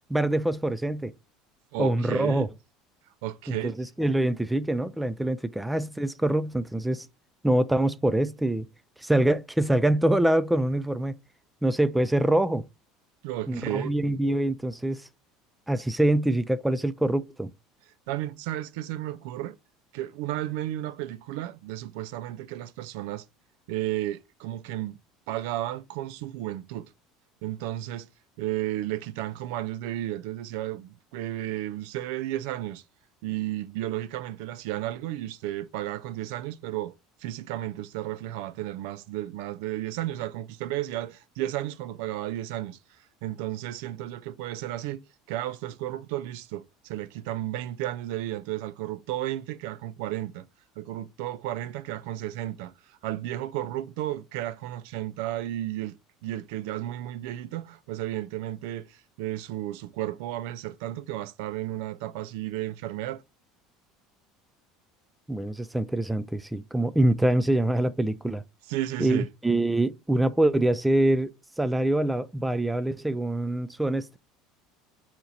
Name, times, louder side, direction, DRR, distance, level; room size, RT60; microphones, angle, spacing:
voice 1, 0.1-1.1 1.8-2.5 3.5-7.1 7.4-8.7 9.0-11.2 11.6-12.7 13.5-15.1 15.7-17.5 65.3-68.4 69.0-74.2, right 1 dB, 5° right, 0.4 m, -25 dB
voice 2, 1.7-2.5 3.2-3.8 13.2-13.9 18.1-19.5 19.9-23.2 23.7-25.0 25.3-26.9 27.4-28.1 28.4-32.8 33.2-36.9 37.2-42.8 43.2-45.0 45.3-50.4 50.8-52.7 53.0-56.0 56.2-63.2 68.7-69.3, right 14 dB, 75° right, 0.4 m, -33 dB
4.2 x 2.8 x 3.8 m
supercardioid pair, 90°, 0 cm